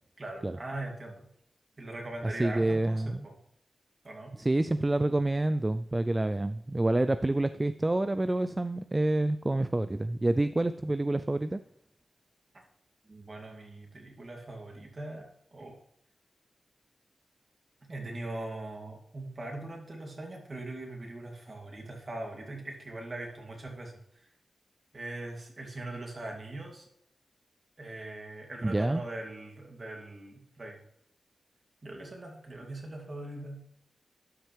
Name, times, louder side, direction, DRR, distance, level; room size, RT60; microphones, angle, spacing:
voice 1, 0.2-1.3 1.8-3.4 4.0-4.4 13.1-15.8 17.8-24.3 24.9-26.9 27.8-30.8 31.8-33.6, right 2 dB, 45° right, 0 dB, 2.5 m, -41 dB
voice 2, 2.2-3.3 4.3-11.6 28.6-29.0, right 2 dB, 20° right, 12 dB, 0.3 m, -28 dB
12.0 x 6.2 x 3.3 m, 0.75 s
wide cardioid pair, 75°, 0 cm